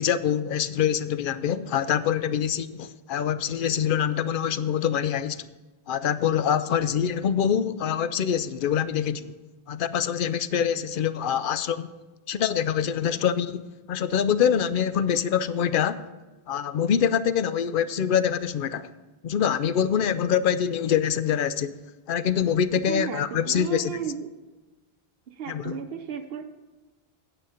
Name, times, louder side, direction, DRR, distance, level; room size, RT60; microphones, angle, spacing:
voice 1, 0.0-5.4 5.9-9.3 9.7-11.9 12.3-16.0 16.5-18.9 19.2-21.8 22.1-23.9 25.5-25.7, left 8 dB, 60° left, 0.7 m, -25 dB
voice 2, 22.8-24.3 25.3-26.4, right 7 dB, 65° right, 0.9 m, -34 dB
9.0 x 8.6 x 5.0 m
omnidirectional pair, 1.1 m